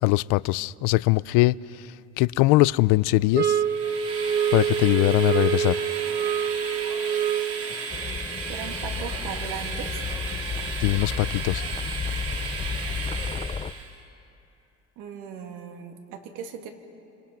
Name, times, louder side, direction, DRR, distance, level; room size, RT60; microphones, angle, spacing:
voice 1, 0.0-1.6 2.2-3.6 4.5-5.8 10.8-11.6, left 20 dB, 85° left, 0.5 m, -21 dB
sound 1, 3.3-7.7, right 8 dB, 30° right, 1.2 m, -26 dB
Train, 3.5-14.0, right 5 dB, 50° right, 2.9 m, -34 dB
sound 2, 7.9-13.7, left 6 dB, 20° left, 0.5 m, -32 dB
voice 2, 8.5-10.0 15.0-16.7, right 7 dB, 85° right, 2.7 m, -38 dB
27.5 x 26.5 x 5.9 m
cardioid pair, 115°, 31 cm